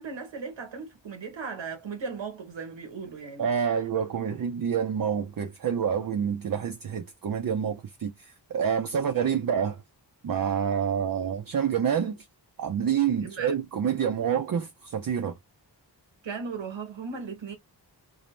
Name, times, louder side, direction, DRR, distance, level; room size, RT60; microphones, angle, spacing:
voice 1, 0.0-3.5 13.2-13.5 16.2-17.5, right 5 dB, 90° right, 0.9 m, -37 dB
voice 2, 3.4-9.8 10.2-12.2 12.6-15.3, right 8 dB, 50° right, 0.5 m, -27 dB
2.6 x 2.0 x 3.0 m
wide cardioid pair, 95°, 44 cm